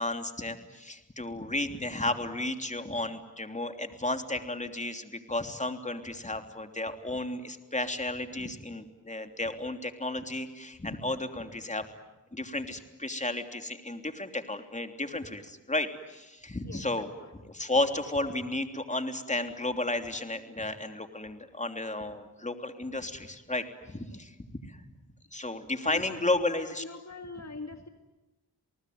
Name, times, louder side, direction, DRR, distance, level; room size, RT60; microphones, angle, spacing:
voice 1, 0.0-11.8 12.3-17.1 17.4-24.8 25.3-26.8, left 2 dB, 15° left, 6 dB, 3.1 m, -33 dB
voice 2, 16.6-17.3 24.1-24.2 25.8-27.9, left 3 dB, 40° left, 6 dB, 1.9 m, -43 dB
29.0 x 19.0 x 9.4 m, 1.1 s
cardioid pair, 50°, 41 cm